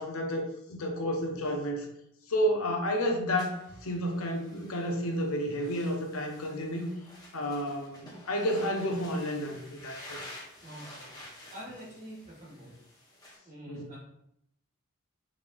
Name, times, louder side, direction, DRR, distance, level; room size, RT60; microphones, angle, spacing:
voice 1, 0.0-1.9 2.3-6.9 7.3-10.3 13.7-13.8, equal, 80° left, 2 dB, 0.8 m, -31 dB
sound 1, 3.4-13.4, left 1 dB, 20° left, 1.0 m, -50 dB
voice 2, 11.2-12.7 13.4-14.0, equal, 35° right, -5 dB, 1.4 m, -46 dB
5.1 x 3.3 x 2.6 m, 0.75 s
head